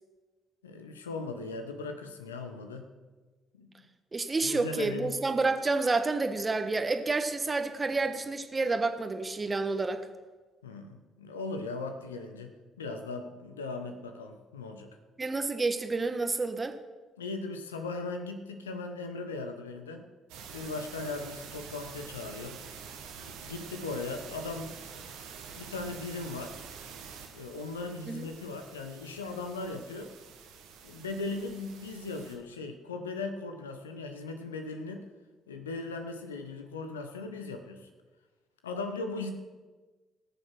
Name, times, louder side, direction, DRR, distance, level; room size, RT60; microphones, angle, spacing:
voice 1, 0.6-2.9 3.5-3.7 4.4-5.2 10.6-14.9 17.2-20.0 20.5-22.6 23.2-24.7 25.5-26.6 27.3-30.1 30.8-35.0 35.5-37.9 38.6-39.3, left 3 dB, 80° left, 7 dB, 1.1 m, -38 dB
voice 2, 4.1-10.0 15.2-16.8 28.1-28.3, right 3 dB, 25° right, 8 dB, 1.4 m, -29 dB
sound 1, 20.3-32.4, right 6 dB, 70° right, 1.7 m, -47 dB
19.0 x 6.9 x 6.0 m, 1.3 s
figure-of-eight pair, 45°, 0 cm